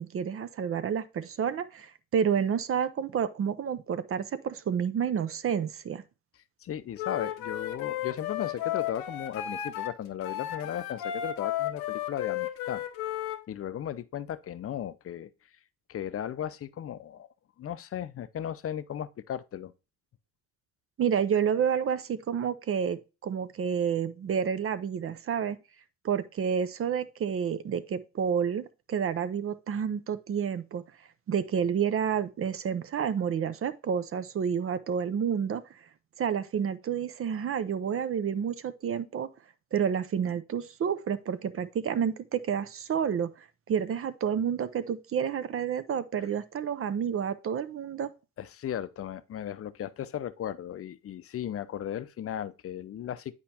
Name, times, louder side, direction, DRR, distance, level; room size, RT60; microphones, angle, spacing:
voice 1, 0.0-6.0 21.0-25.6 26.0-30.8 31.3-35.6 36.2-39.3 39.7-43.3 43.7-48.1, right 7 dB, 40° right, 0.5 m, -29 dB
voice 2, 6.6-12.8 13.5-15.3 15.9-17.3 17.6-19.7 48.4-53.3, left 10 dB, 40° left, 0.5 m, -36 dB
Wind instrument woodwind instrument, 7.0-9.9 10.2-13.4, left 12 dB, 80° left, 0.7 m, -33 dB
8.5 x 4.5 x 2.8 m
supercardioid pair, 55°, 34 cm